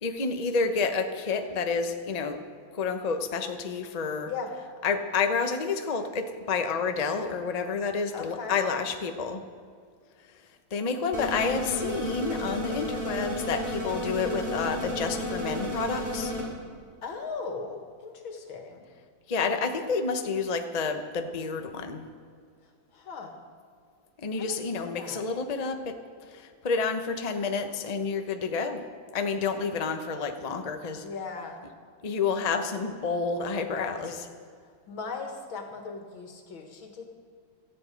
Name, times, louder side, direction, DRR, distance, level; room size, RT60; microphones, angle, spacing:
voice 1, 0.0-2.4 2.7-4.3 4.8-9.4 10.7-16.3 19.3-22.1 24.2-28.8 29.1-31.0 32.0-34.3, left 5 dB, 30° left, 6 dB, 0.7 m, -29 dB
voice 2, 8.1-8.6 17.0-18.9 22.9-23.3 24.4-25.2 31.0-31.6 34.0-34.1 34.9-37.1, left 4 dB, 90° left, 4 dB, 2.6 m, -38 dB
sound 1, 11.1-16.4, left 1 dB, 20° right, 4.3 m, -32 dB
17.5 x 13.5 x 5.2 m, 2.1 s
omnidirectional pair, 2.1 m